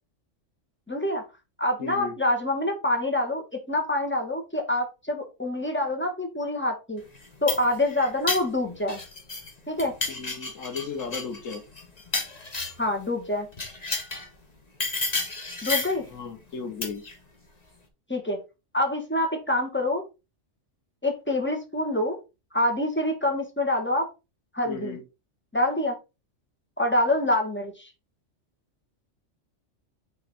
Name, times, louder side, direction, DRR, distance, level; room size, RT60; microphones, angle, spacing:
voice 1, 0.9-1.2 1.6-7.0 7.4-9.0 9.7-9.9 12.8-13.5 15.6-16.0 18.1-18.4 18.7-20.0 21.0-22.2 22.5-24.1 24.5-25.0 25.5-25.9 26.8-27.9, left 1 dB, 10° left, 3 dB, 1.8 m, -26 dB
voice 2, 1.8-2.2 10.1-11.6 16.1-17.0 24.7-25.0, left 5 dB, 80° left, 4 dB, 1.7 m, -35 dB
sound 1, 7.1-9.5 9.8-12.9 13.5-14.3 14.8-16.0 16.8-17.1, left 3 dB, 35° left, 1.5 m, -31 dB
6.6 x 4.1 x 4.2 m, 0.27 s
omnidirectional pair, 1.3 m